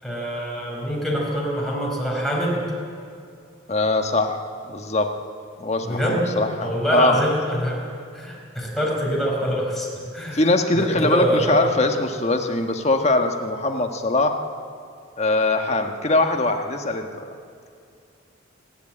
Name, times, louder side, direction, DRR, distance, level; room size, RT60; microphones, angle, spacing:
voice 1, 0.0-2.6 5.8-6.3 6.6-7.8 8.1-9.9 10.1-10.4 10.7-11.7, equal, ahead, -3 dB, 4.6 m, -24 dB
voice 2, 3.7-4.4 4.6-5.1 5.6-7.2 10.3-14.4 15.2-17.3, left 2 dB, 30° left, 5 dB, 1.4 m, -22 dB
28.0 x 11.5 x 8.7 m, 2.5 s
head